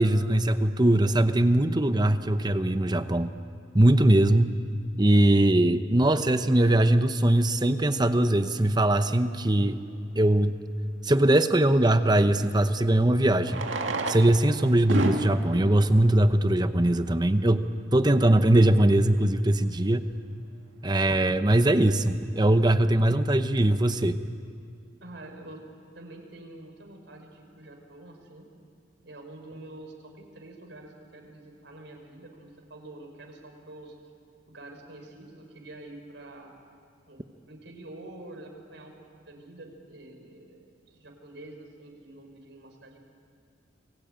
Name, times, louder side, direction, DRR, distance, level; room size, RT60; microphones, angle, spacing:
voice 1, 0.0-3.3 3.7-4.5 5.0-9.8 10.1-10.5 11.0-13.6 14.1-17.7 17.9-20.1 20.8-24.2, right 1 dB, 20° right, 10 dB, 0.9 m, -21 dB
Fireworks, 9.9-10.0 12.2-12.3 13.4-17.2 17.9-18.0 18.2-18.3 18.5-18.6 19.1-19.4, right 2 dB, 90° right, 1.9 m, -32 dB
voice 2, 25.0-25.6 26.0-28.5 29.0-34.0 34.5-36.5 37.1-38.9 39.3-43.1, right 2 dB, 70° right, 3 dB, 5.1 m, -46 dB
29.0 x 22.0 x 9.0 m, 2.3 s
head